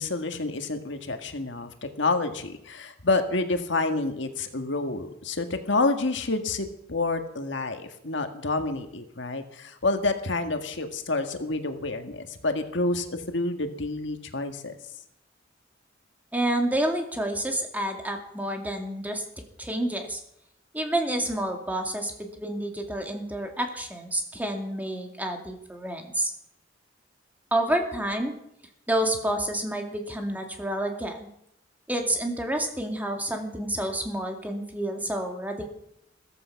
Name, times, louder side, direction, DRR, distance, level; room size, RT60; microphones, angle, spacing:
voice 1, 0.0-1.7 2.0-14.8, left 3 dB, 70° left, 6 dB, 1.8 m, -28 dB
voice 2, 16.3-19.2 19.6-20.2 20.7-26.3 27.5-28.3 28.9-31.3 31.9-35.7, right 1 dB, 10° right, 3 dB, 2.4 m, -29 dB
15.0 x 14.5 x 5.9 m, 0.76 s
head